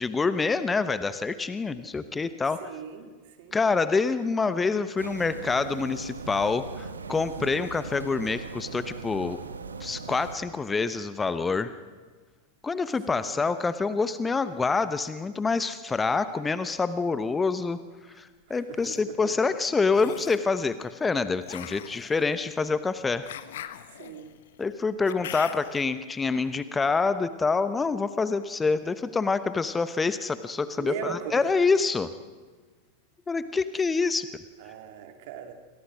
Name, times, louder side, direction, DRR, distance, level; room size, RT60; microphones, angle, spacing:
voice 1, 0.0-2.6 3.5-9.4 9.8-11.7 12.6-17.8 18.1-23.3 24.6-32.1 33.3-34.3, left 4 dB, 15° left, 13 dB, 1.0 m, -26 dB
voice 2, 2.6-3.1 3.4-3.6 13.1-13.3 18.5-19.0 23.9-24.3 30.7-31.4 34.6-35.5, right 9 dB, 50° right, 6 dB, 3.0 m, -39 dB
sound 1, 5.0-10.4, right 4 dB, 75° right, 1.7 m, -39 dB
sound 2, 18.6-19.0 19.9-20.5 21.4-25.9, left 11 dB, 60° left, 1.3 m, -42 dB
29.0 x 24.0 x 6.2 m, 1.4 s
figure-of-eight pair, 90°, 0 cm